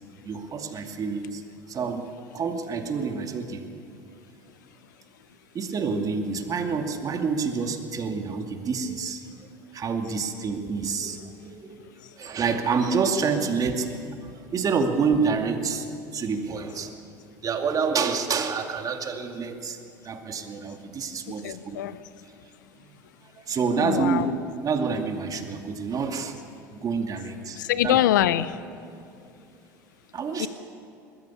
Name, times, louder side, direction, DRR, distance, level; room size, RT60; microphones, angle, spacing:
voice 1, 0.2-1.4 1.7-3.7 5.5-9.2 9.7-11.8 12.2-15.9 16.1-17.0 17.4-19.8 20.0-21.8 22.8-23.0 23.3-24.2 24.6-26.4 26.7-28.0 30.1-30.5, right 5 dB, 35° right, 5 dB, 2.4 m, -28 dB
voice 2, 21.4-22.0 23.8-24.3 27.5-28.6 30.4-30.5, left 12 dB, 80° left, 16 dB, 0.7 m, -24 dB
21.0 x 14.5 x 8.5 m, 2.6 s
hypercardioid pair, 75°, 10 cm